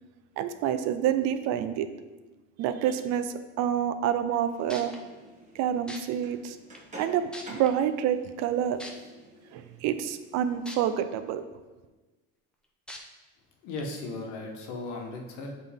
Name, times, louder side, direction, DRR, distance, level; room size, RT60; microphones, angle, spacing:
voice 1, 0.4-1.9 2.6-4.9 5.5-6.6 7.0-8.8 9.5-11.4, right 9 dB, 60° right, 10 dB, 0.5 m, -28 dB
sound 1, 4.3-4.4 4.7-5.0 5.9-6.0 6.7-6.8 7.3-7.7 8.8-8.9 10.7-10.8 11.3-11.4 12.9-13.0 13.8-13.9, left 1 dB, 5° left, 0.6 m, -40 dB
sound 2, 4.4-10.7, right 1 dB, 25° right, 1.3 m, -50 dB
voice 2, 13.6-15.5, left 2 dB, 65° left, 2 dB, 1.2 m, -36 dB
7.3 x 4.0 x 3.5 m, 1.2 s
cardioid pair, 130°, 30 cm